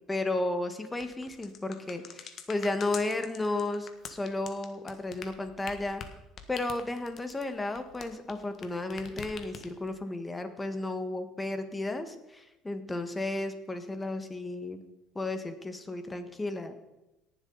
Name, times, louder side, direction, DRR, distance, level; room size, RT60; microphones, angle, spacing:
voice 1, 0.1-6.0 6.5-14.8 15.1-16.8, left 2 dB, 15° left, 8 dB, 1.4 m, -33 dB
sound 1, 0.9-8.7 8.9-9.9, left 7 dB, 50° left, 1.4 m, -44 dB
18.5 x 7.3 x 4.0 m, 0.98 s
cardioid pair, 105°, 0 cm